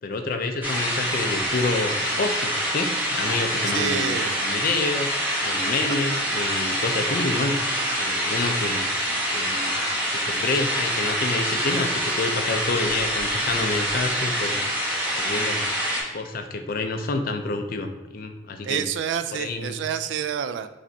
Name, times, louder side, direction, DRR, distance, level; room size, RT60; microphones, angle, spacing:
voice 1, 0.0-7.6 8.0-8.8 9.3-9.8 10.1-14.6 15.1-15.7 16.1-18.8 19.3-19.8, left 3 dB, 50° left, 6 dB, 0.5 m, -28 dB
sound 1, 0.6-16.0, equal, 10° right, 1.0 m, -26 dB
voice 2, 3.7-4.4 18.6-20.7, right 8 dB, 85° right, 12 dB, 0.3 m, -28 dB
5.2 x 3.4 x 2.7 m, 1.1 s
head